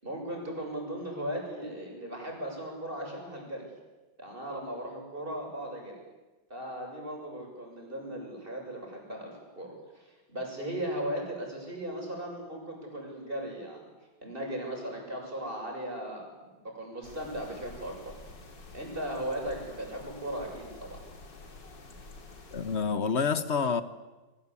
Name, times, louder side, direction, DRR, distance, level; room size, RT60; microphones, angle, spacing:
voice 1, 0.0-3.7 4.2-6.0 6.5-13.9 14.2-18.2 18.7-21.0, right 1 dB, 25° right, 0 dB, 7.4 m, -37 dB
sound 1, 17.0-22.8, left 2 dB, 65° left, 3.4 m, -49 dB
voice 2, 22.5-23.8, left 5 dB, 40° left, 12 dB, 1.3 m, -28 dB
28.0 x 23.5 x 8.5 m, 1.2 s
omnidirectional pair, 2.1 m